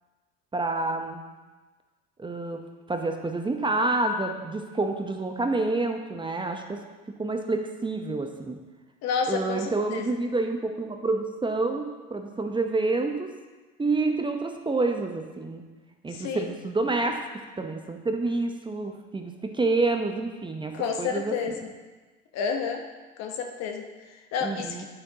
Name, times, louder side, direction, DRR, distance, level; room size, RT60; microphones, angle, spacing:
voice 1, 0.5-1.2 2.2-8.6 9.3-13.3 13.8-15.7 16.0-21.5 24.4-24.8, right 3 dB, 15° right, 4 dB, 0.8 m, -28 dB
voice 2, 9.0-10.2 16.1-16.5 20.7-21.7 22.3-22.8 23.2-24.8, left 6 dB, 55° left, 4 dB, 1.1 m, -30 dB
8.9 x 7.9 x 2.9 m, 1.3 s
hypercardioid pair, 70°, 31 cm